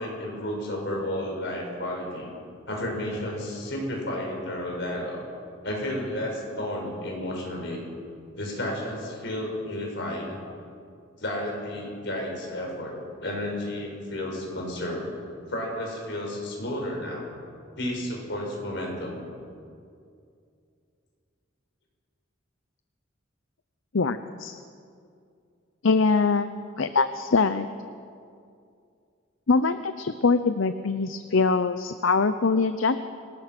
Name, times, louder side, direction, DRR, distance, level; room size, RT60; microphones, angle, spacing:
voice 1, 0.0-2.3 2.7-5.2 5.6-7.8 8.4-10.4 11.2-12.9 13.2-15.1 15.5-17.3 17.8-19.2, left 1 dB, 60° left, -1 dB, 6.0 m, -32 dB
voice 2, 23.9-24.6 25.8-27.7 29.5-33.1, left 4 dB, 75° left, 10 dB, 0.7 m, -23 dB
24.5 x 18.5 x 6.1 m, 2.4 s
head